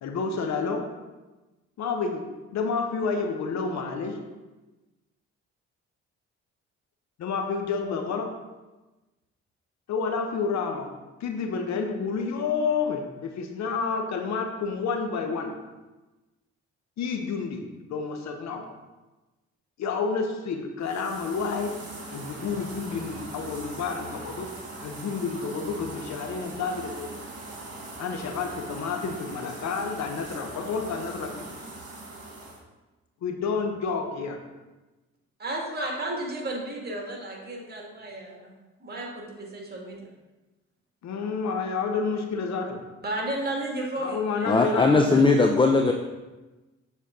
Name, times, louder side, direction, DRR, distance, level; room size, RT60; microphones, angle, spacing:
voice 1, 0.0-0.8 1.8-2.2 2.5-4.2 7.2-8.3 9.9-10.9 11.2-15.6 17.0-17.6 17.9-18.6 19.8-21.7 22.1-24.5 24.8-27.1 28.0-31.5 33.2-34.4 41.0-42.8 44.0-45.2, left 5 dB, 65° left, 4 dB, 0.9 m, -29 dB
sound 1, 20.8-32.6, right 2 dB, 50° right, 1.8 m, -41 dB
voice 2, 35.4-38.5 38.8-40.1 43.0-45.2, right 1 dB, 30° right, -1 dB, 2.0 m, -33 dB
voice 3, 44.5-45.9, left 3 dB, 15° left, 3 dB, 0.5 m, -19 dB
7.0 x 4.2 x 3.7 m, 1.1 s
supercardioid pair, 60°, 30 cm